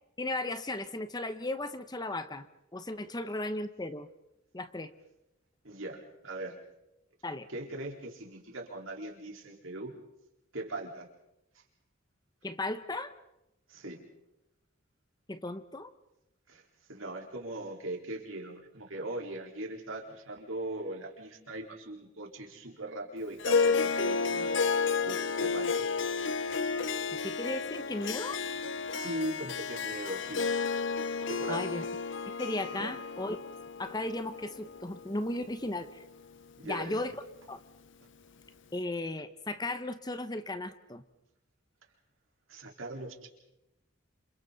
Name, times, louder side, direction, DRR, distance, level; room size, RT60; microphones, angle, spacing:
voice 1, 0.2-4.1 4.5-4.9 7.2-7.5 12.4-13.1 15.3-15.9 27.2-28.4 31.5-31.8 32.4-33.4 33.8-36.0 36.6-37.2 37.5-37.6 38.7-41.0, left 2 dB, 20° left, 11 dB, 0.9 m, -36 dB
voice 2, 5.6-6.5 7.5-9.9 10.5-11.1 13.7-14.0 16.5-16.6 16.9-24.5 25.0-25.8 28.9-30.5 31.3-31.7 32.7-32.9 36.6-37.0 42.5-43.3, right 1 dB, 75° right, 1 dB, 4.1 m, -40 dB
Harp, 23.4-36.0, left 5 dB, 60° left, 0.8 m, -32 dB
29.5 x 27.0 x 4.0 m, 0.90 s
head